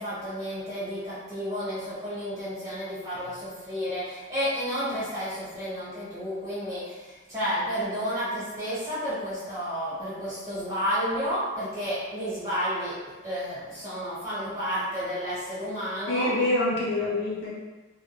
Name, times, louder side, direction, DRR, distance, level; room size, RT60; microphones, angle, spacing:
voice 1, 0.0-12.9 13.2-16.3, equal, 15° right, -12 dB, 1.2 m, -31 dB
voice 2, 16.1-17.5, left 2 dB, 65° left, -7 dB, 0.7 m, -26 dB
2.3 x 2.2 x 3.0 m, 1.2 s
head